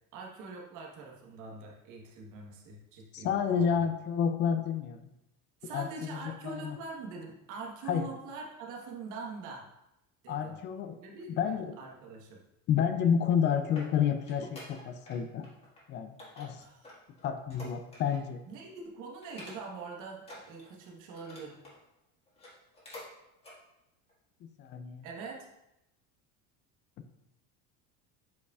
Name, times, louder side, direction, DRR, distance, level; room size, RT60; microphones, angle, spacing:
voice 1, 0.1-3.9 5.6-9.7 10.2-10.6 11.0-12.4 16.6-16.8 18.5-21.6 25.0-25.4, right 4 dB, 50° right, 0 dB, 1.3 m, -44 dB
voice 2, 3.1-5.0 5.7-6.8 7.9-8.1 10.3-11.0 11.4-11.7 12.7-15.5 15.9-16.6 17.2-18.4 24.4-25.1, left 7 dB, 30° left, 8 dB, 0.4 m, -30 dB
sound 1, 13.2-15.2 15.4-15.8 16.2-18.3 18.7-18.8 19.2-19.9 20.2-21.8 22.3-23.1 23.4-23.6 24.1-24.2, left 1 dB, 15° left, 1.6 m, -50 dB
8.1 x 5.1 x 2.4 m, 0.88 s
cardioid pair, 150°, 38 cm